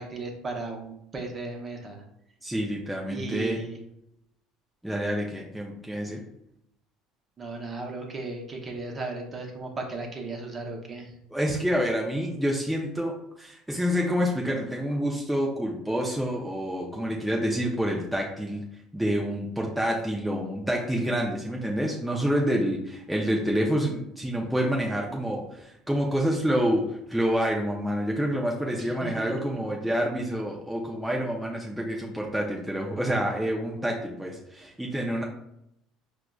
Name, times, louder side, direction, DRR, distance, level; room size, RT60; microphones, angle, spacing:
voice 1, 0.0-2.0 3.1-3.8 7.4-11.1 28.7-29.7, right 3 dB, 30° right, 1 dB, 0.8 m, -36 dB
voice 2, 2.4-3.6 4.8-6.2 11.3-18.6 18.9-35.2, equal, 5° right, -2 dB, 0.6 m, -28 dB
4.7 x 2.2 x 2.3 m, 0.78 s
hypercardioid pair, 70°, 0 cm